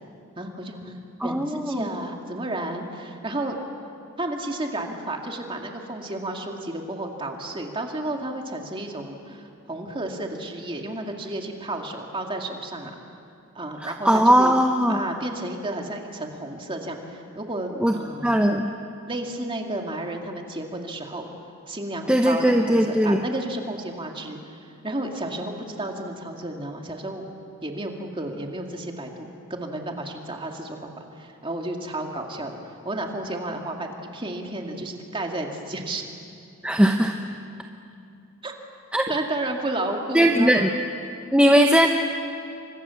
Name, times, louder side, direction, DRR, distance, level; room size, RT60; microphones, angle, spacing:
voice 1, 0.4-3.6 4.2-12.9 13.5-14.5 14.9-18.4 19.1-21.3 21.7-27.2 27.6-32.6 32.8-36.1 38.4-38.5 39.1-40.7 41.5-41.7, right 1 dB, 25° right, 2 dB, 2.4 m, -32 dB
voice 2, 1.2-1.8 13.8-15.0 17.8-17.9 18.2-18.7 22.1-23.2 36.6-37.1 38.9-39.0 40.1-40.7 41.3-41.9, equal, 5° right, 3 dB, 0.9 m, -19 dB
29.5 x 25.0 x 7.2 m, 2.5 s
head